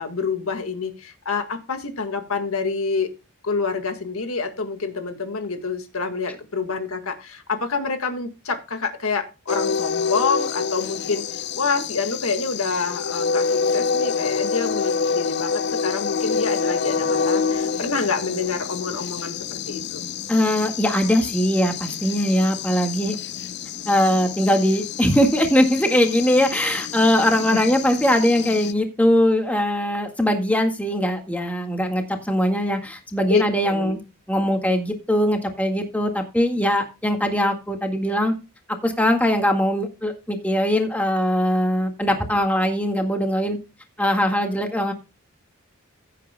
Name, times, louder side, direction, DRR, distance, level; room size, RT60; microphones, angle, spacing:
voice 1, 0.0-3.1 3.4-20.1 27.5-27.6 33.3-33.9, left 4 dB, 80° left, 7 dB, 1.8 m, -27 dB
sound 1, 9.5-28.7, left 5 dB, 50° left, 0.5 m, -27 dB
voice 2, 20.3-23.2 23.9-34.0 34.3-38.3 38.8-43.6 44.0-44.9, equal, 5° left, 4 dB, 1.8 m, -21 dB
16.0 x 8.6 x 2.2 m, 0.28 s
head